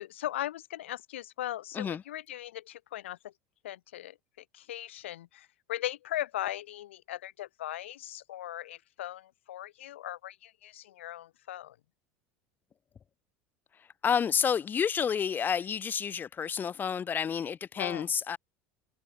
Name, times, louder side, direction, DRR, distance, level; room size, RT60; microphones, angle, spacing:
voice 1, 0.0-3.3 3.6-11.8 17.8-18.1, left 13 dB, 90° left, 1.2 m, -39 dB
voice 2, 13.8-18.4, left 7 dB, 30° left, 0.8 m, -30 dB
supercardioid pair, 95°, 6 cm